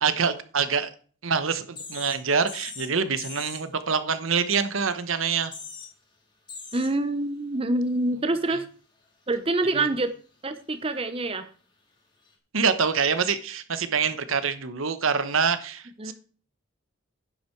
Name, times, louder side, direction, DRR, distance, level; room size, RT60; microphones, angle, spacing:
voice 1, 0.0-0.9 1.2-5.5 9.7-9.9 12.5-16.1, right 5 dB, 80° right, 11 dB, 1.0 m, -25 dB
sound 1, 1.8-2.2 2.5-2.9 3.2-3.6 5.0-5.1 5.3-5.9 6.5-7.0 7.5-7.6 12.3-12.4, left 5 dB, 20° left, 2.2 m, -40 dB
voice 2, 6.7-8.6 9.3-10.1 10.4-11.5 16.0-16.1, right 2 dB, 25° right, 10 dB, 0.7 m, -26 dB
10.5 x 8.5 x 4.6 m, 0.41 s
head